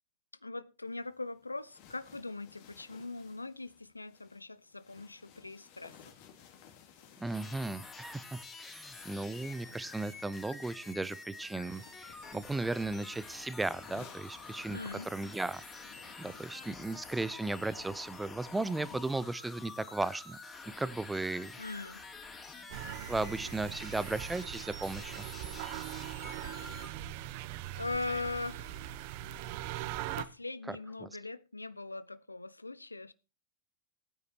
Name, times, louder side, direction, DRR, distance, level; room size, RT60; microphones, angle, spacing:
voice 1, 0.4-6.2 14.7-15.1 21.6-22.0 26.3-26.7 27.8-29.0 30.2-33.1, left 3 dB, 80° left, 0.5 m, -41 dB
sound 1, 0.9-19.3, left 8 dB, 45° left, 2.5 m, -59 dB
voice 2, 7.2-14.8 15.1-15.6 16.2-20.4 20.8-21.5 23.1-25.3 30.7-30.8 31.0-31.1, right 2 dB, 10° right, 0.7 m, -36 dB
sound 2, 7.3-26.9, left 4 dB, 15° left, 3.0 m, -48 dB
sound 3, 22.7-30.2, right 13 dB, 45° right, 0.9 m, -41 dB
19.5 x 9.5 x 2.9 m
figure-of-eight pair, 90°, 0 cm